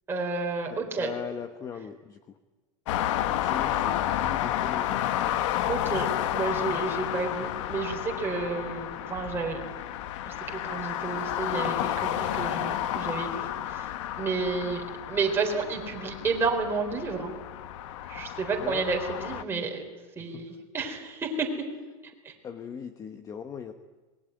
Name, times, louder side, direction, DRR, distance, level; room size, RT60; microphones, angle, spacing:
voice 1, 0.1-1.1 5.7-9.9 10.2-17.3 18.1-19.8 20.2-21.6 22.2-22.3, right 4 dB, 15° right, 0 dB, 4.0 m, -31 dB
voice 2, 0.7-2.4 3.4-5.0 18.6-18.8 20.2-20.5 22.4-23.7, left 7 dB, 20° left, 8 dB, 1.1 m, -39 dB
sound 1, 2.9-19.4, left 12 dB, 65° left, 1.4 m, -31 dB
26.5 x 20.5 x 9.3 m, 1.2 s
supercardioid pair, 155°, 17 cm